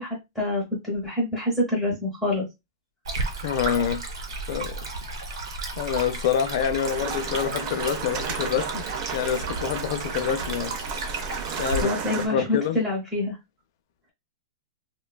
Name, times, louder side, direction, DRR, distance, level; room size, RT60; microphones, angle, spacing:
voice 1, 0.0-2.5 11.8-13.4, left 1 dB, ahead, 0.8 m, -26 dB
Stream, 3.0-11.8, right 3 dB, 85° right, 1.0 m, -33 dB
voice 2, 3.4-4.0 4.5-4.8 5.8-8.9 9.1-10.8 11.6-12.8, left 8 dB, 55° left, 0.4 m, -26 dB
sound 1, 6.8-12.3, right 7 dB, 35° right, 0.4 m, -33 dB
3.1 x 2.2 x 2.2 m
supercardioid pair, 155°, 2 cm